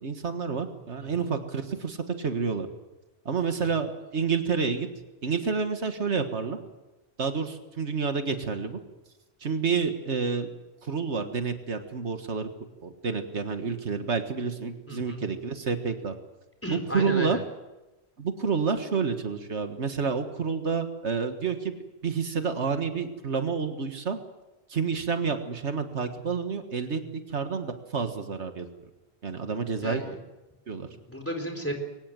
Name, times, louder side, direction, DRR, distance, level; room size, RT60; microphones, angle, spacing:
voice 1, 0.0-2.7 3.3-4.9 5.2-6.6 7.2-8.8 9.4-10.5 10.8-12.5 12.8-16.2 16.7-17.4 18.2-21.7 22.0-24.2 24.7-28.7 29.2-30.0 30.7-30.9, right 5 dB, 85° right, 7 dB, 1.9 m, -29 dB
voice 2, 14.9-15.2 16.6-17.4 29.8-30.1 31.1-31.8, equal, 10° left, 4 dB, 4.0 m, -33 dB
23.0 x 18.5 x 7.6 m, 1.0 s
omnidirectional pair, 1.1 m